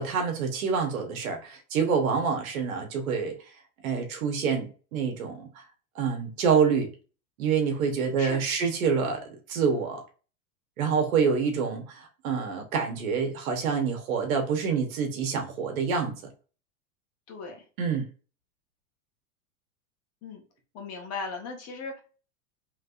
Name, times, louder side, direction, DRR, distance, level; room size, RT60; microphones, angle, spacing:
voice 1, 0.0-3.3 3.8-5.6 5.9-6.9 7.4-10.0 10.8-16.1 17.8-18.1, right 6 dB, 85° right, 3 dB, 1.1 m, -27 dB
voice 2, 17.3-17.6 20.2-20.4 20.7-22.0, left 4 dB, 35° left, 2 dB, 1.2 m, -37 dB
3.4 x 3.2 x 2.5 m, 0.36 s
supercardioid pair, 130°, 41 cm